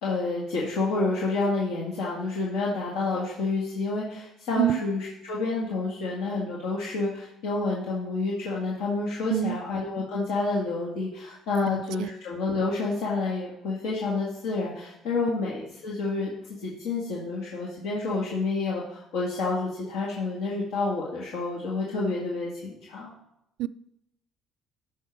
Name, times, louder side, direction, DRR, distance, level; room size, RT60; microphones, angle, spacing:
voice 1, 0.0-23.1, left 3 dB, 85° left, -4 dB, 1.9 m, -29 dB
voice 2, 11.7-12.1 23.6-23.7, right 14 dB, 75° right, 18 dB, 0.3 m, -26 dB
13.0 x 5.8 x 4.6 m, 0.83 s
cardioid pair, 130°, 0 cm